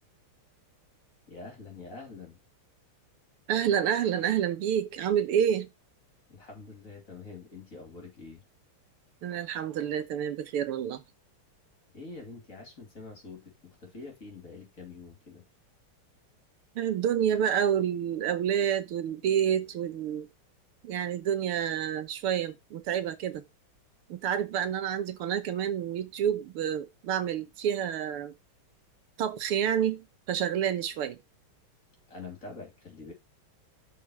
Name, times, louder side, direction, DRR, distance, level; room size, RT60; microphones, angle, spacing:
voice 1, 1.3-2.4 6.3-8.4 11.9-15.4 32.1-33.1, left 3 dB, 40° left, 3.2 m, -45 dB
voice 2, 3.5-5.7 9.2-11.0 16.8-20.3 20.8-23.4 24.1-28.3 29.2-31.2, right 9 dB, 80° right, 1.9 m, -28 dB
6.5 x 4.7 x 5.7 m
omnidirectional pair, 2.4 m